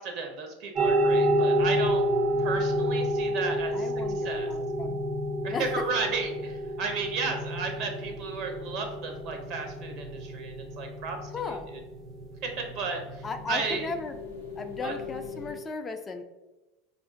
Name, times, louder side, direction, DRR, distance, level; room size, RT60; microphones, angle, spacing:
voice 1, 0.0-2.0 2.4-4.5 5.4-11.6 12.4-13.9 14.8-15.0, right 4 dB, 55° right, 3 dB, 0.8 m, -34 dB
sound 1, 0.7-15.5, equal, 40° right, 0.4 m, -29 dB
voice 2, 3.7-5.0 5.5-5.7 11.3-11.7 13.2-14.1 14.6-16.2, left 4 dB, 25° left, 7 dB, 0.3 m, -36 dB
sound 2, 5.4-15.6, left 7 dB, 90° left, 0.6 m, -47 dB
4.8 x 2.5 x 2.4 m, 1.1 s
hypercardioid pair, 90°, 0 cm